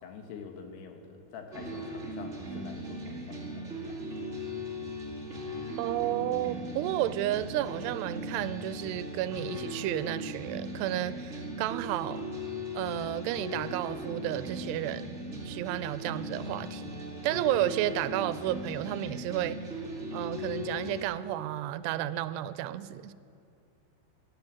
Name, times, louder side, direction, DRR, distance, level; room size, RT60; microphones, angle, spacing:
voice 1, 0.0-4.1, left 5 dB, 80° left, 4 dB, 3.4 m, -46 dB
sound 1, 1.5-21.0, equal, 25° right, 1.7 m, -38 dB
voice 2, 5.8-12.2 12.8-15.1 15.5-16.9 17.2-19.6 20.1-23.1, right 13 dB, 90° right, 14 dB, 2.7 m, -32 dB
12.5 x 11.5 x 8.4 m, 2.6 s
omnidirectional pair, 4.7 m